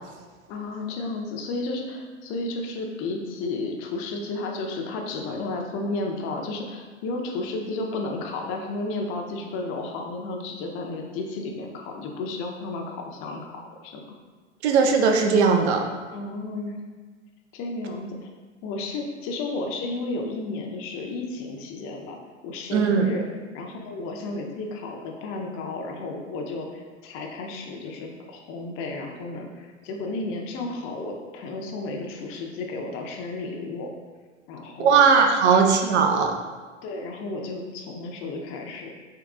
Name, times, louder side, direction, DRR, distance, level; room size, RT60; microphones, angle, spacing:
voice 1, 0.5-14.0 16.1-16.8 17.5-18.3 18.6-22.2 22.4-23.2 23.5-33.9 34.5-35.0 35.5-35.7 36.8-38.9, left 2 dB, 40° left, 2 dB, 0.5 m, -32 dB
voice 2, 14.6-15.8 22.7-23.1 34.8-36.3, right 5 dB, 70° right, 3 dB, 0.6 m, -18 dB
3.7 x 2.8 x 2.3 m, 1.5 s
hypercardioid pair, 100°, 35 cm